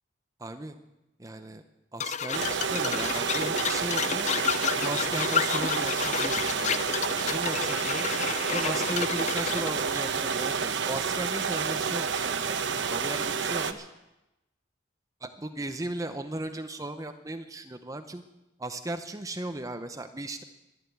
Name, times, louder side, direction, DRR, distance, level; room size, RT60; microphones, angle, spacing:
voice 1, 0.4-0.8 1.2-1.6 1.9-4.3 4.8-8.1 8.5-13.9 15.2-18.2 18.6-20.4, right 2 dB, 20° right, 8 dB, 0.7 m, -36 dB
sound 1, 2.0-9.7, left 7 dB, 40° left, 0.5 m, -31 dB
sound 2, 2.3-13.7, right 6 dB, 80° right, 0.9 m, -29 dB
12.5 x 11.0 x 8.4 m, 0.96 s
head